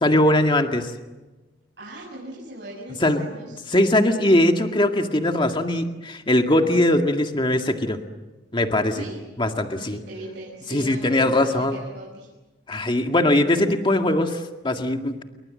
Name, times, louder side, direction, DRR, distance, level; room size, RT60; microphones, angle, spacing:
voice 1, 0.0-0.9 3.0-3.2 3.7-8.0 8.5-9.0 9.4-10.0 10.7-11.8 12.7-15.2, left 1 dB, 30° left, 4 dB, 2.0 m, -20 dB
voice 2, 1.8-3.6 8.9-9.2 9.8-12.3, right 1 dB, 65° right, -3 dB, 6.8 m, -39 dB
28.5 x 23.5 x 7.8 m, 1.1 s
head